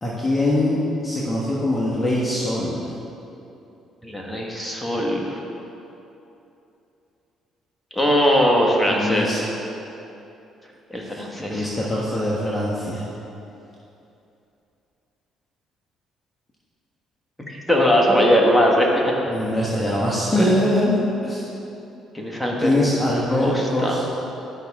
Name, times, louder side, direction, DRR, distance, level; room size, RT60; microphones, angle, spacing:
voice 1, 0.0-3.0 8.9-9.4 11.0-13.0 19.3-21.5 22.6-24.2, left 1 dB, 25° left, -6 dB, 1.4 m, -23 dB
voice 2, 4.0-5.4 7.9-9.5 10.9-11.7 17.5-18.9 20.3-20.5 22.1-22.7 23.3-23.9, equal, 5° left, -2 dB, 1.8 m, -20 dB
12.0 x 5.8 x 3.7 m, 2.8 s
supercardioid pair, 70°, 0 cm